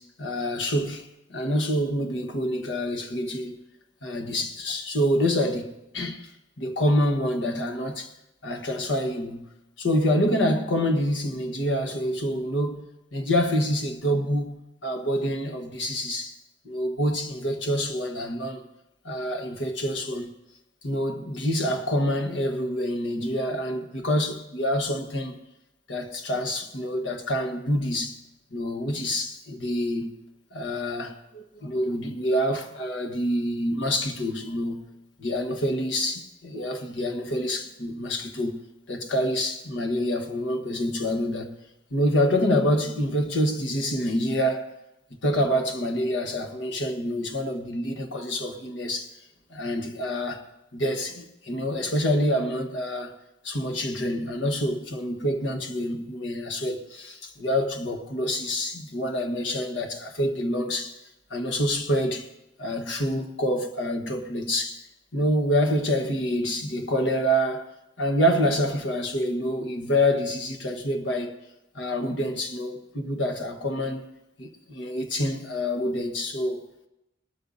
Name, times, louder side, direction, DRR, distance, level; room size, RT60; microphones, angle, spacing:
voice 1, 0.0-3.6 4.0-6.3 6.6-8.1 8.4-9.5 9.8-12.8 13.1-16.3 16.6-18.6 19.0-20.3 20.8-25.4 25.9-28.2 28.5-30.2 30.5-34.9 35.2-41.5 41.9-44.7 45.2-49.1 49.5-50.5 50.7-53.1 53.4-61.0 61.3-62.3 62.6-64.9 65.1-67.7 68.0-71.3 71.7-74.0 74.4-76.6, equal, 90° left, 1.4 m, -27 dB
20.0 x 13.0 x 2.7 m
head